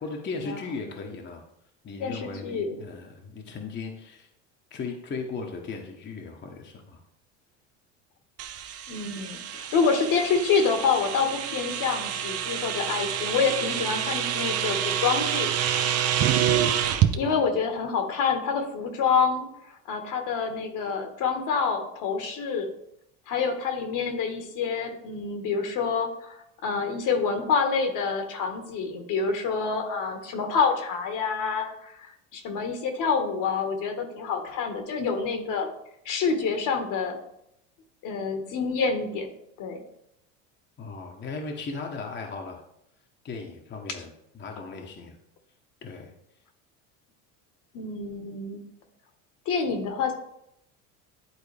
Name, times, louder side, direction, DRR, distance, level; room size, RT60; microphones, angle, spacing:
voice 1, 0.0-1.4 1.8-4.3 4.7-7.0 17.2-17.5 40.8-42.6 43.2-45.2 45.8-46.1, left 4 dB, 30° left, 2 dB, 1.1 m, -37 dB
voice 2, 2.0-2.8 8.9-15.5 17.1-19.5 19.9-22.7 23.3-35.7 36.0-37.2 38.0-39.3 39.6-39.8 47.7-48.6 49.4-50.1, left 5 dB, 55° left, 6 dB, 1.5 m, -27 dB
sound 1, 8.4-17.1, right 10 dB, 40° right, 0.8 m, -27 dB
11.0 x 4.0 x 3.4 m, 0.78 s
supercardioid pair, 95°, 37 cm